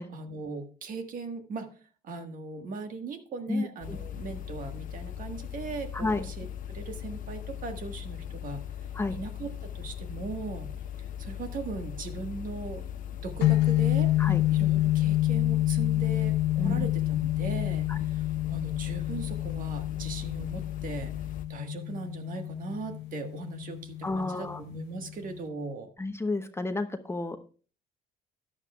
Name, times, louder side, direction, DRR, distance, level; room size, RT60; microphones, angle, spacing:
voice 1, 0.0-8.7 9.1-12.8 13.2-21.1 21.5-25.9, right 3 dB, 55° right, 6 dB, 1.5 m, -39 dB
sound 1, 3.8-21.5, left 10 dB, 55° left, 0.8 m, -39 dB
sound 2, 13.4-25.5, left 15 dB, 90° left, 0.8 m, -28 dB
voice 2, 24.0-24.6 26.0-27.4, left 2 dB, 15° left, 8 dB, 0.8 m, -30 dB
13.5 x 10.0 x 2.3 m, 0.38 s
cardioid pair, 110°, 17 cm